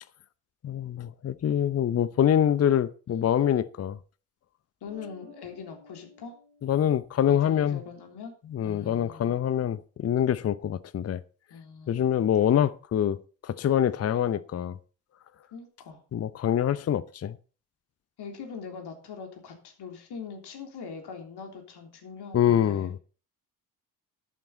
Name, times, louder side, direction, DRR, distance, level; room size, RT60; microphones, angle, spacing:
voice 1, 0.6-4.0 6.6-7.8 8.5-11.2 11.9-13.2 13.4-14.8 16.1-17.4 22.3-23.0, left 10 dB, 30° left, 0.8 m, -25 dB
voice 2, 4.8-6.4 7.3-8.3 8.6-9.4 11.5-12.0 15.5-16.0 18.2-22.9, left 5 dB, 55° left, 3.4 m, -42 dB
Bass guitar, 4.9-7.5, left 1 dB, 70° right, 4.2 m, -54 dB
12.0 x 11.0 x 4.1 m
figure-of-eight pair, 45°, 48 cm